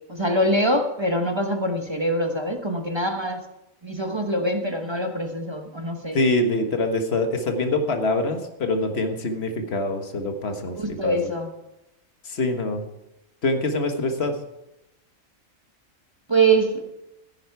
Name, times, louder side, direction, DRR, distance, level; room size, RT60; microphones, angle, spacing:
voice 1, 0.1-3.4 3.8-6.2 10.7-11.5 16.3-16.8, right 1 dB, 20° right, 4 dB, 1.2 m, -24 dB
voice 2, 6.1-11.2 12.2-12.8 13.4-14.3, left 2 dB, 50° left, 5 dB, 1.6 m, -24 dB
15.0 x 10.5 x 4.7 m, 0.90 s
omnidirectional pair, 1.4 m